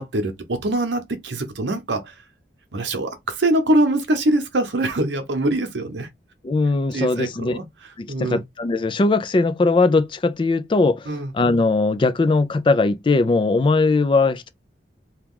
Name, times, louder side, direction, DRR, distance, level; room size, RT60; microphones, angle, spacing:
voice 1, 0.0-2.2 2.7-6.1 6.9-7.6 8.1-8.4 11.1-11.3, right 1 dB, 90° right, 0.8 m, -23 dB
voice 2, 6.4-7.6 8.0-11.1 11.3-14.5, left 3 dB, 30° left, 0.3 m, -19 dB
2.9 x 2.3 x 3.6 m
head